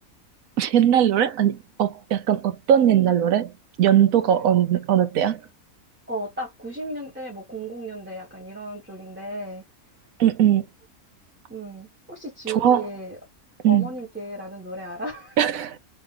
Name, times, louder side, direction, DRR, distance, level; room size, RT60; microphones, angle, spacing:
voice 1, 0.6-3.5 3.8-5.4 10.2-10.6 12.5-12.9 13.6-13.9 15.4-15.8, right 10 dB, 70° right, 1.2 m, -20 dB
voice 2, 6.1-9.6 11.5-13.1 13.7-15.4, right 1 dB, 5° right, 1.5 m, -34 dB
3.7 x 3.3 x 3.5 m
omnidirectional pair, 1.6 m